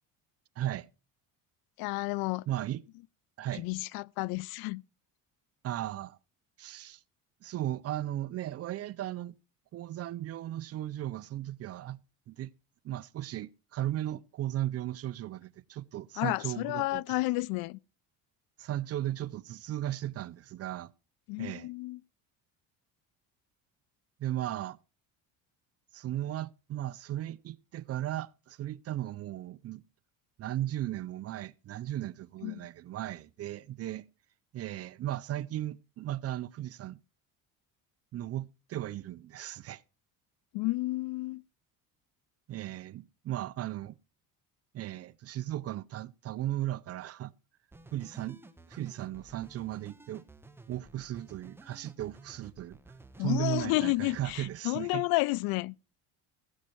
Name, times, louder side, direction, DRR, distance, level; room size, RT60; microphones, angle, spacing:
voice 1, 0.6-0.9 2.5-2.8 3.4-3.7 5.6-6.2 6.6-7.0 7.4-9.3 9.7-12.0 12.3-12.5 12.8-17.2 18.6-20.9 21.4-21.7 24.2-24.8 25.9-29.8 30.4-34.0 34.5-37.0 38.1-39.8 42.5-44.0 44.7-47.3 47.9-48.4 48.7-50.2 50.7-52.8 53.2-55.0, right 13 dB, 40° right, 0.5 m, -36 dB
voice 2, 1.8-2.4 3.5-4.8 16.2-17.8 21.3-22.0 32.4-32.7 40.5-41.4 53.2-55.7, left 21 dB, 70° left, 0.5 m, -31 dB
sound 1, 47.7-54.6, right 2 dB, 5° right, 1.0 m, -54 dB
16.0 x 7.4 x 4.4 m
cardioid pair, 130°, 37 cm